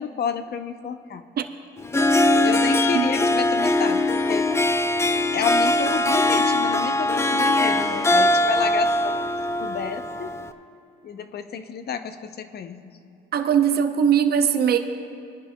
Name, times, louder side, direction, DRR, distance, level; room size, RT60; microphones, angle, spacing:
voice 1, 0.0-1.2 2.4-4.5 5.3-9.2 9.6-10.3 11.0-13.0, left 7 dB, 55° left, 9 dB, 0.7 m, -30 dB
Harp, 1.8-10.5, left 1 dB, 15° left, 0.5 m, -21 dB
voice 2, 13.3-14.8, right 8 dB, 55° right, 7 dB, 0.7 m, -20 dB
24.5 x 10.5 x 2.3 m, 2.8 s
cardioid pair, 90°, 20 cm